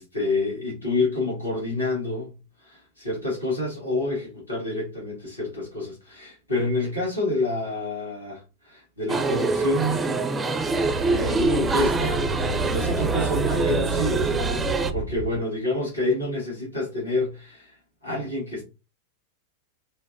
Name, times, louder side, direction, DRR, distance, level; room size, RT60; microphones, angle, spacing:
voice 1, 0.0-2.3 2.6-10.3 11.0-14.3 14.6-17.8 18.0-18.6, left 2 dB, 80° left, 1.5 m, -28 dB
sound 1, 9.1-14.9, right 3 dB, 15° right, 0.4 m, -25 dB
sound 2, 10.5-15.4, right 3 dB, 80° right, 0.4 m, -30 dB
4.4 x 2.2 x 2.2 m
figure-of-eight pair, 90°, 0 cm